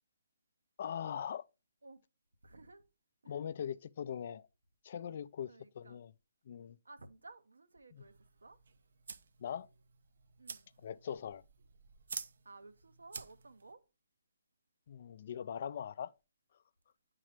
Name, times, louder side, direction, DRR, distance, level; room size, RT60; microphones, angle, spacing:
voice 1, 0.8-1.5 3.3-4.5 4.8-6.1 6.5-6.8 7.9-8.0 9.4-9.7 10.8-11.4 14.9-16.1, left 8 dB, 50° left, 0.3 m, -41 dB
voice 2, 2.4-2.9 3.2-3.4 5.5-6.0 6.8-8.6 10.4-10.7 12.4-13.8, right 3 dB, 90° right, 0.9 m, -56 dB
Classic lighter, 8.0-13.7, right 5 dB, 70° right, 0.5 m, -50 dB
9.2 x 3.8 x 3.3 m
hypercardioid pair, 145°, 0 cm